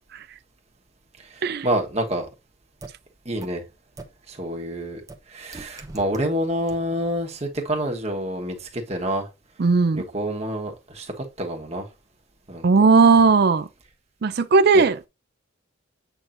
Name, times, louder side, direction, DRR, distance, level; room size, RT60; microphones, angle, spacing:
voice 1, 1.3-2.3 3.2-3.6 4.3-5.0 5.3-9.3 9.9-11.8 12.5-12.7 14.7-14.8, right 1 dB, 30° right, 1.3 m, -28 dB
sound 1, 2.8-2.9 3.4-3.5 4.0-4.1 5.1-5.2 5.5-6.2 6.7-6.8, right 2 dB, 15° right, 0.8 m, -38 dB
voice 2, 9.6-10.0 12.6-13.7 14.2-15.1, right 4 dB, 50° right, 0.4 m, -17 dB
8.1 x 5.8 x 2.6 m
head